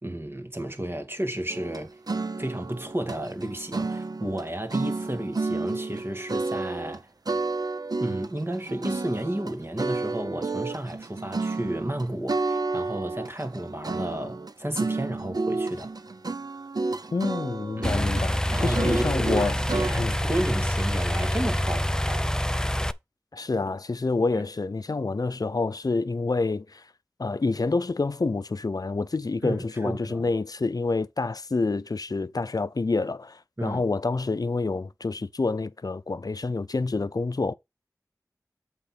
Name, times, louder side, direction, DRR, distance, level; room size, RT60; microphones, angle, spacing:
voice 1, 0.0-2.0 2.4-7.1 8.0-15.9 17.8-18.1 18.5-22.3 24.3-24.4 29.4-30.3 33.6-33.8, right 1 dB, 35° right, 2.1 m, -32 dB
sound 1, 1.5-4.4 4.7-7.0 7.3-19.9, right 3 dB, 65° right, 0.7 m, -31 dB
voice 2, 17.1-18.4 18.6-19.6 20.0-20.1 23.3-26.8 27.2-37.5, left 3 dB, 65° left, 0.6 m, -27 dB
sound 2, 17.8-22.9, equal, 10° left, 0.6 m, -26 dB
8.0 x 3.7 x 5.9 m
wide cardioid pair, 45°, 7 cm